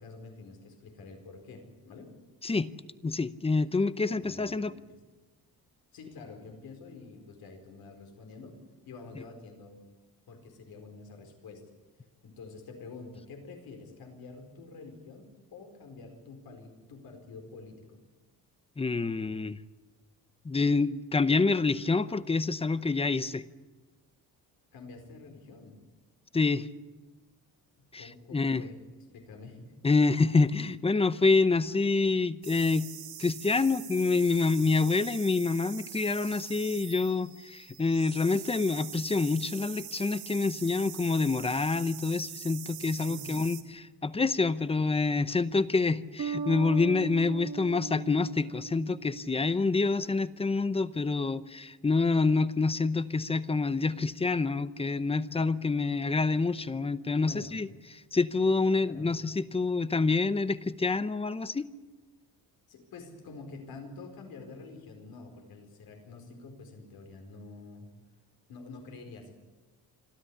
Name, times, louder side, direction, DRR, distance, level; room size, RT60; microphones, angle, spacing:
voice 1, 0.0-2.2 4.2-5.0 5.9-8.6 8.8-9.8 10.3-11.6 12.2-18.0 24.7-25.8 27.8-28.8 29.1-29.7 43.1-43.4 57.2-57.6 58.8-59.1 62.7-67.9 68.5-69.3, left 3 dB, 75° left, 5 dB, 4.7 m, -47 dB
voice 2, 3.0-4.7 18.8-19.6 20.4-23.4 26.3-26.7 27.9-28.6 29.8-32.9 33.2-43.6 44.0-57.7 58.1-61.7, left 3 dB, 15° left, 15 dB, 0.7 m, -27 dB
sound 1, 32.4-43.6, right 10 dB, 75° right, 2.3 m, -44 dB
Bass guitar, 46.2-49.7, right 6 dB, 50° right, 1.3 m, -38 dB
26.0 x 13.5 x 10.0 m, 1.2 s
cardioid pair, 135°, 37 cm